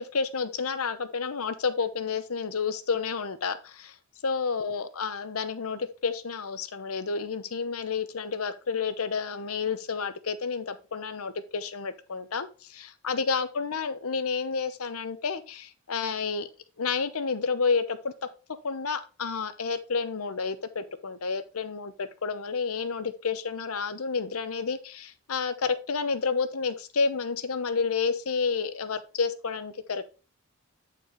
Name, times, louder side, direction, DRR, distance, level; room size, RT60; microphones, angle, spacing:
voice 1, 0.0-3.9 4.2-16.5 16.8-18.1 18.6-30.0, left 5 dB, 85° left, 12 dB, 0.8 m, -30 dB
8.5 x 4.6 x 3.9 m, 0.33 s
head